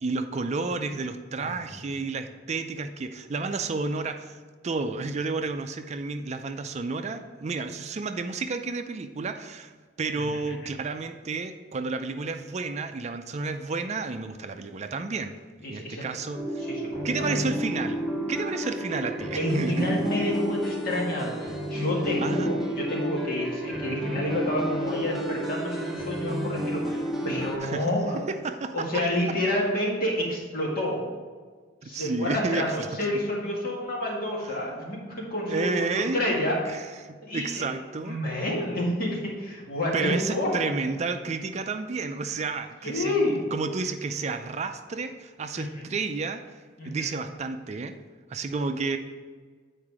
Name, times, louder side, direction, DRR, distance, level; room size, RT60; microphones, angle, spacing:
voice 1, 0.0-9.7 10.0-15.4 15.7-16.6 17.0-18.0 18.3-20.0 22.2-22.5 27.6-27.9 28.3-28.9 31.8-32.9 34.4-34.5 35.5-36.2 36.7-38.2 39.9-43.1 43.5-48.0 48.3-49.0, right 4 dB, 35° right, 7 dB, 0.4 m, -31 dB
voice 2, 10.1-10.7 15.6-16.1 16.6-17.4 19.3-28.2 28.7-31.1 31.8-36.9 37.2-37.6 38.1-40.5 42.8-43.4 45.5-45.8 46.8-47.2, left 1 dB, 55° left, -3 dB, 2.0 m, -29 dB
sound 1, 16.3-27.6, equal, ahead, 1.0 m, -31 dB
9.1 x 4.8 x 4.8 m, 1.5 s
head